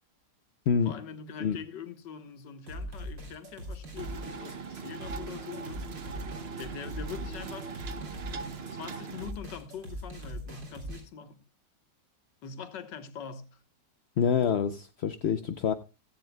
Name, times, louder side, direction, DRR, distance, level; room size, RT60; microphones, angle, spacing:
voice 1, 0.8-5.9 6.6-7.9 8.3-11.4 12.4-13.6, left 7 dB, 80° left, 1.9 m, -43 dB
sound 1, 2.7-11.0, equal, 90° right, 4.1 m, -41 dB
sound 2, 4.0-9.3, right 5 dB, 45° right, 0.9 m, -40 dB
voice 2, 14.2-15.7, left 7 dB, 60° left, 0.7 m, -26 dB
16.5 x 14.5 x 2.2 m
omnidirectional pair, 1.9 m